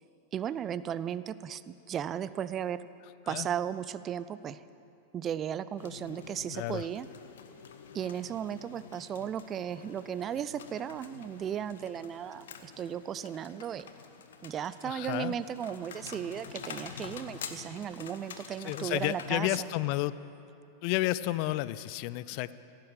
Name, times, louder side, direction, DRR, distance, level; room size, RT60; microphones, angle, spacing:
voice 1, 0.3-2.8 3.3-4.6 5.1-7.1 7.9-13.9 14.4-19.7, right 9 dB, 30° right, 16 dB, 0.4 m, -35 dB
sound 1, 5.8-19.8, left 7 dB, 60° left, 0.9 m, -47 dB
voice 2, 6.5-6.9 14.8-15.3 18.6-20.1 20.8-22.6, left 16 dB, 45° left, 16 dB, 0.4 m, -31 dB
16.0 x 7.4 x 8.9 m, 2.7 s
figure-of-eight pair, 90°, 0 cm